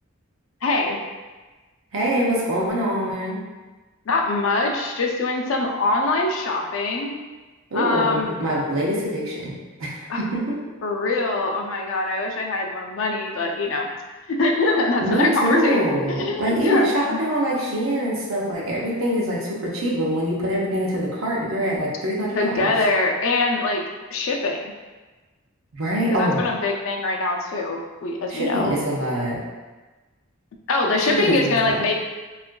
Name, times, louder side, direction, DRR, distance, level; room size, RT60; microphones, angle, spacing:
voice 1, 0.6-1.0 4.1-7.1 7.7-8.3 10.1-10.2 10.8-13.9 14.3-15.8 16.1-17.2 22.3-23.8 24.1-24.6 26.1-28.7 30.7-32.0, left 2 dB, 70° left, 1 dB, 0.4 m, -23 dB
voice 2, 1.9-3.4 7.7-9.5 9.8-10.6 15.0-22.7 25.7-26.4 28.3-29.4 31.1-31.8, right 1 dB, 75° right, -4 dB, 0.7 m, -24 dB
3.6 x 2.4 x 2.2 m, 1.2 s
head